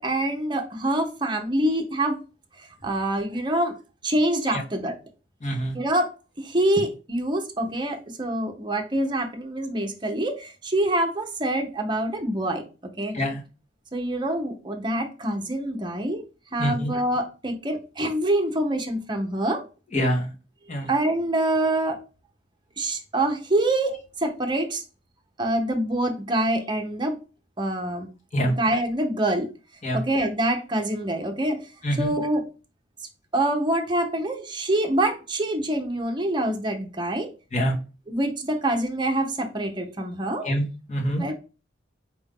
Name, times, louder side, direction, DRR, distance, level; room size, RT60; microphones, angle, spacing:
voice 1, 0.0-2.2 2.8-3.7 4.0-4.9 5.7-6.1 6.4-13.1 13.9-16.2 16.5-19.6 20.9-22.0 22.8-24.8 25.4-27.2 27.6-28.1 28.5-29.5 29.9-31.6 32.0-32.4 33.3-37.3 38.1-40.5 41.2-41.3, right 1 dB, 25° right, 4 dB, 0.8 m, -25 dB
voice 2, 5.4-5.8 13.1-13.4 16.6-16.9 19.9-20.3 20.7-20.9 28.3-28.5 29.8-30.0 31.8-32.1 37.5-37.7 40.4-40.6 40.9-41.2, equal, 40° left, -1 dB, 1.2 m, -25 dB
4.6 x 2.6 x 3.5 m, 0.32 s
head